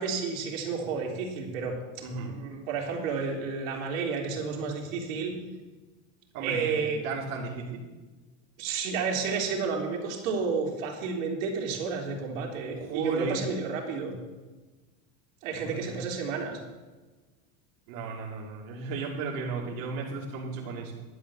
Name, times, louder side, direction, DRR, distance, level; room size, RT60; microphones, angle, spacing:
voice 1, 0.0-1.8 2.2-5.3 6.4-7.0 8.6-14.1 15.4-16.6, right 5 dB, 80° right, -1 dB, 3.0 m, -31 dB
voice 2, 2.0-2.3 6.3-7.8 12.7-13.4 15.5-16.0 17.9-20.9, right 4 dB, 60° right, -3 dB, 2.5 m, -35 dB
11.5 x 8.1 x 7.0 m, 1.2 s
supercardioid pair, 130°, 39 cm